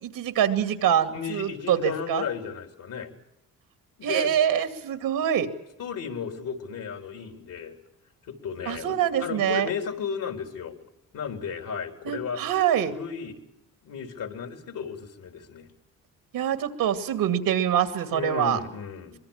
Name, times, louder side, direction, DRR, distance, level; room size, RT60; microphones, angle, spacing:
voice 1, 0.0-2.2 4.0-5.5 8.7-9.7 12.0-12.9 16.3-18.6, right 9 dB, 80° right, 8 dB, 2.5 m, -25 dB
voice 2, 1.1-3.1 4.0-4.3 5.8-7.8 8.2-10.7 11.1-12.4 12.9-13.4 13.8-15.7 18.1-19.2, left 7 dB, 70° left, 5 dB, 4.0 m, -34 dB
24.5 x 22.5 x 7.4 m, 0.84 s
supercardioid pair, 60°, 34 cm